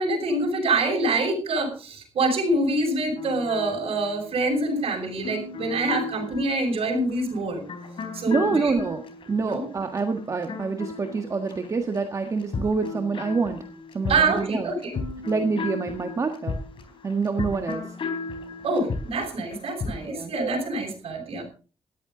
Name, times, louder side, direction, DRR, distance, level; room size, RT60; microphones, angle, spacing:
voice 1, 0.0-7.6 8.1-8.8 9.4-9.7 14.1-14.9 18.6-21.4, right 2 dB, 65° right, 0 dB, 6.4 m, -26 dB
sound 1, 3.2-12.0 12.2-20.1, left 4 dB, 55° left, 3.8 m, -35 dB
voice 2, 8.3-9.0 9.3-13.6 13.9-14.7 15.3-16.6 17.0-17.8 20.0-20.3, right 4 dB, 30° right, 5 dB, 1.5 m, -26 dB
18.5 x 13.5 x 3.9 m, 0.36 s
wide cardioid pair, 170°, 10 cm